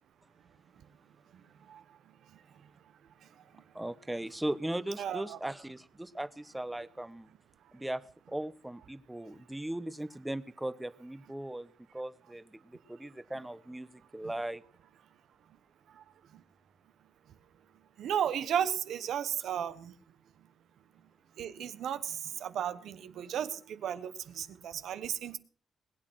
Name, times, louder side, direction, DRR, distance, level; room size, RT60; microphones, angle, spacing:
voice 1, 3.7-7.3 7.7-14.6, right 1 dB, 10° right, 0.9 m, -38 dB
voice 2, 5.0-5.4 15.9-16.0 16.3-16.4 18.0-19.9 21.4-25.4, right 9 dB, 85° right, 1.1 m, -34 dB
20.5 x 8.8 x 6.2 m
cardioid pair, 105°, 0 cm